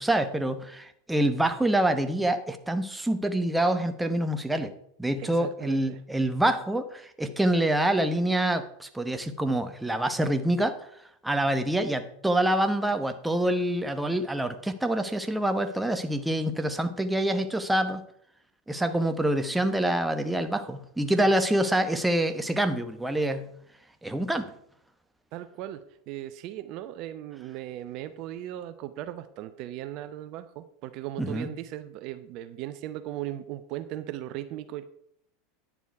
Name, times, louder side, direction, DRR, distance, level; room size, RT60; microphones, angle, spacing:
voice 1, 0.0-4.7 5.0-10.8 11.2-18.0 18.7-23.5 24.0-24.5 31.2-31.5, right 1 dB, 5° right, 8 dB, 1.0 m, -26 dB
voice 2, 5.2-6.0 25.3-25.8 26.1-34.8, right 13 dB, 55° right, 11 dB, 0.7 m, -37 dB
10.0 x 7.2 x 4.6 m, 0.69 s
hypercardioid pair, 95°, 0 cm